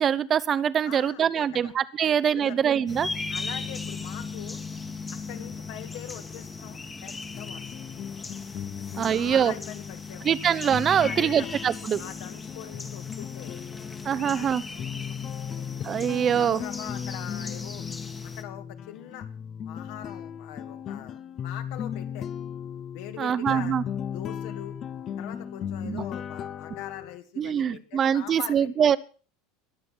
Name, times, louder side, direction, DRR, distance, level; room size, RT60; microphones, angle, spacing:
voice 1, 0.0-3.1 8.9-9.5 10.2-12.0 14.0-14.6 15.8-16.6 23.2-23.8 25.8-26.0 27.4-29.0, right 8 dB, 25° right, 18 dB, 0.8 m, -24 dB
voice 2, 0.8-1.7 2.0-2.6 3.3-4.6 5.1-7.8 8.8-10.4 11.0-11.5 12.0-13.6 14.2-15.7 16.4-17.8 18.4-19.3 19.7-22.3 22.9-23.8 24.1-24.8 25.2-28.7, left 11 dB, 65° left, 7 dB, 2.2 m, -43 dB
sound 1, 2.9-18.4, left 4 dB, 10° left, 1.4 m, -38 dB
sound 2, 7.3-27.2, left 8 dB, 30° left, 0.7 m, -37 dB
21.5 x 7.8 x 6.1 m, 0.39 s
supercardioid pair, 150°, 0 cm